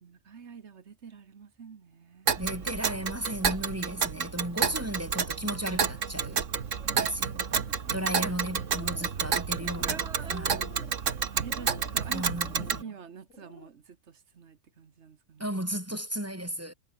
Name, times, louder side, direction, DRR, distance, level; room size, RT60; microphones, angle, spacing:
voice 1, 0.0-2.4 9.8-10.7 11.4-12.3 12.6-15.4, right 6 dB, 65° right, 1.6 m, -46 dB
Tick, 2.3-12.8, right 6 dB, 85° right, 1.8 m, -30 dB
voice 2, 2.4-6.5 6.9-7.6 7.9-10.1 10.3-10.7 12.1-12.8 15.4-16.7, right 1 dB, 10° right, 3.0 m, -35 dB
sound 1, 8.6-9.2 9.5-10.0 10.4-11.0 11.5-12.0 12.4-12.8 13.3-13.7, left 4 dB, 80° left, 2.8 m, -50 dB
omnidirectional pair, 1.3 m